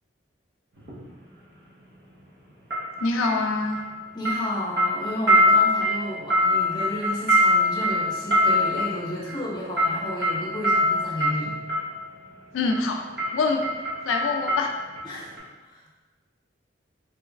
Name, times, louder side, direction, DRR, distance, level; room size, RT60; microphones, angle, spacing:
sound 1, 0.8-1.0 2.7-11.9 12.7-12.9 13.2-15.1 15.4-15.5, left 1 dB, 60° right, 0.8 m, -23 dB
voice 1, 3.0-3.8 12.5-13.0 13.3-13.7 14.1-14.7, left 3 dB, 90° left, 3 dB, 0.3 m, -25 dB
voice 2, 4.1-11.5 15.0-15.3 15.7-15.9, equal, 20° left, -5 dB, 0.7 m, -32 dB
3.2 x 3.0 x 2.4 m, 1.2 s
head